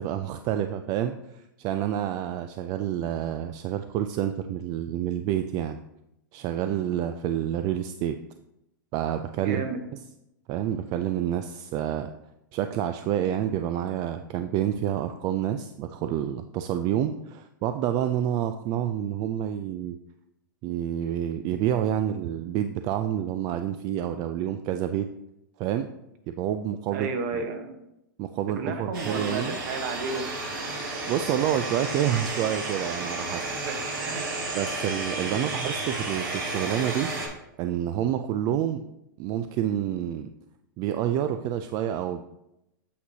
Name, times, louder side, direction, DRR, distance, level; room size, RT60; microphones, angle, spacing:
voice 1, 0.0-5.8 6.3-8.2 8.9-9.7 10.5-12.1 12.5-20.0 20.6-25.1 25.6-25.9 26.3-27.1 28.2-29.6 31.1-33.5 34.5-37.1 37.6-38.8 39.2-40.3 40.8-42.2, right 10 dB, 35° right, 8 dB, 0.3 m, -28 dB
voice 2, 9.4-9.8 26.9-27.8 28.6-30.3 33.6-34.3 35.3-35.6, right 4 dB, 55° right, 6 dB, 1.2 m, -33 dB
sound 1, 28.9-37.3, right 2 dB, 75° right, 2.6 m, -32 dB
8.3 x 6.2 x 2.8 m, 0.86 s
hypercardioid pair, 130°, 11 cm